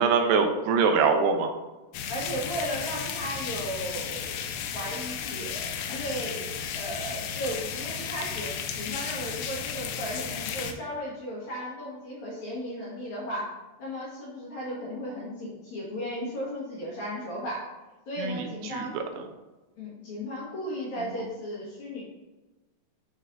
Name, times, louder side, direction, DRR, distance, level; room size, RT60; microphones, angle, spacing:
voice 1, 0.0-1.5 18.2-19.0, right 5 dB, 85° right, 5 dB, 2.8 m, -24 dB
sound 1, 1.9-10.7, left 7 dB, 85° left, 2.6 m, -34 dB
voice 2, 2.1-4.5 4.7-13.5 13.8-17.6 18.1-19.2 19.8-22.0, equal, 60° left, -6 dB, 2.2 m, -35 dB
11.0 x 4.1 x 2.6 m, 1.1 s
omnidirectional pair, 4.8 m